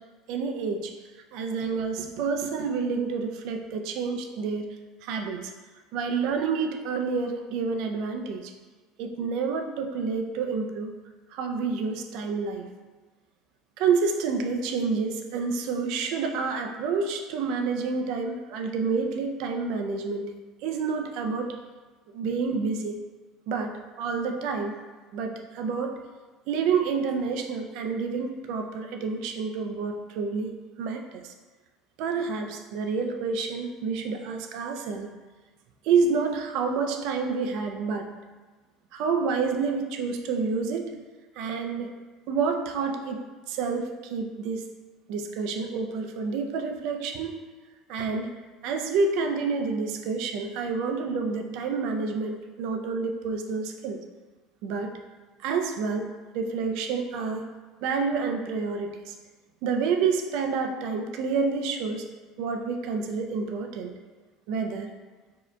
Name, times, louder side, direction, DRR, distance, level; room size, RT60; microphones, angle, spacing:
voice 1, 0.3-0.9 1.3-4.8 5.0-5.5 5.9-8.5 9.0-10.9 11.3-12.7 13.8-20.3 20.6-21.5 22.1-22.9 23.5-24.7 25.1-25.9 26.5-30.5 30.8-31.3 32.0-35.1 35.8-38.1 38.9-40.9 41.4-41.9 42.3-43.2 43.5-44.6 45.1-47.3 47.9-48.3 48.6-54.0 54.6-54.9 55.4-56.1 56.3-57.4 57.8-59.1 59.6-62.0 62.4-63.9 64.5-64.9, right 5 dB, 70° right, 4 dB, 0.4 m, -28 dB
4.6 x 2.7 x 2.2 m, 1.3 s
supercardioid pair, 125°, 0 cm